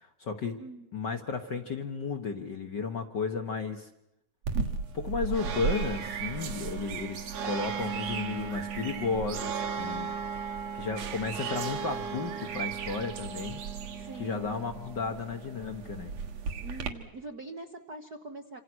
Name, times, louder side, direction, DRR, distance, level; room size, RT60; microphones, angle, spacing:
voice 1, 0.0-0.6 0.9-3.9 4.9-10.1 10.7-13.6 14.2-16.1, left 5 dB, 45° left, 5 dB, 1.6 m, -34 dB
sound 1, 4.4-16.9, right 6 dB, 65° right, 2.7 m, -35 dB
voice 2, 14.0-14.8 16.6-18.6, right 2 dB, 45° right, 4 dB, 1.3 m, -43 dB
27.0 x 26.5 x 6.3 m, 0.86 s
omnidirectional pair, 3.3 m